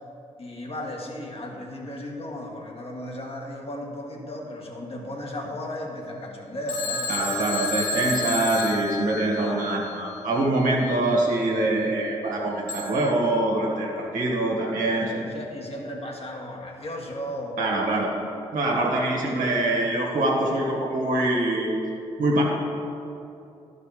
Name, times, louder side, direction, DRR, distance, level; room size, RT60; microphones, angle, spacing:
voice 1, 0.4-7.1 7.5-7.6 9.4-9.7 14.9-17.9, left 1 dB, 45° left, -1 dB, 1.7 m, -35 dB
Telephone, 6.7-9.7 12.7-13.1, left 3 dB, 85° left, 1.0 m, -30 dB
voice 2, 7.1-15.2 17.6-18.1 18.5-21.7 22.2-22.4, right 2 dB, 70° right, -2 dB, 1.8 m, -24 dB
12.0 x 4.9 x 5.0 m, 2.8 s
supercardioid pair, 45°, 14 cm